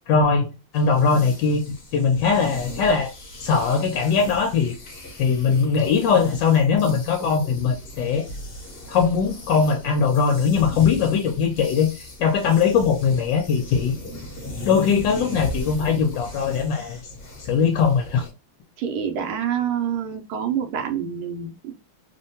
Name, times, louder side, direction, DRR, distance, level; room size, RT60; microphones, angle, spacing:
voice 1, 0.1-0.5 0.7-1.6 1.9-3.1 3.4-4.7 5.2-8.2 8.9-14.0 14.6-17.0 17.4-18.3, left 5 dB, 70° left, 3 dB, 1.2 m, -20 dB
sound 1, 0.7-18.3, left 1 dB, 40° left, 0.9 m, -38 dB
voice 2, 18.8-21.7, right 8 dB, 90° right, 5 dB, 1.5 m, -27 dB
3.5 x 2.2 x 2.7 m, 0.29 s
omnidirectional pair, 2.3 m